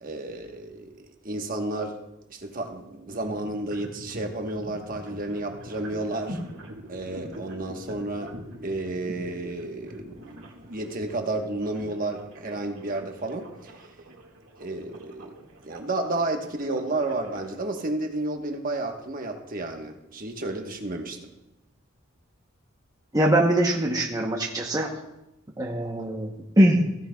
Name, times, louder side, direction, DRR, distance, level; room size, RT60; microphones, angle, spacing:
voice 1, 0.0-2.0 2.3-6.4 6.9-8.4 8.6-13.7 14.6-15.3 15.6-21.3, right 2 dB, 45° right, 3 dB, 1.2 m, -31 dB
sound 1, 3.1-17.6, equal, 80° right, 1.8 m, -44 dB
voice 2, 23.1-25.0 25.6-27.0, right 1 dB, 20° right, -1 dB, 0.8 m, -22 dB
16.0 x 9.8 x 2.3 m, 0.89 s
head